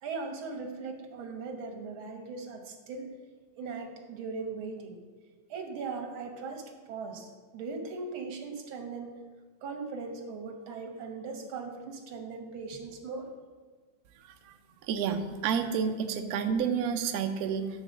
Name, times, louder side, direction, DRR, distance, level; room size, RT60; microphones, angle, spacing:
voice 1, 0.0-3.1 3.6-5.0 5.5-9.2 9.6-13.3, right 4 dB, 85° right, 3 dB, 1.9 m, -39 dB
voice 2, 14.9-17.7, right 7 dB, 65° right, 6 dB, 0.9 m, -29 dB
9.8 x 4.1 x 6.4 m, 1.4 s
omnidirectional pair, 2.2 m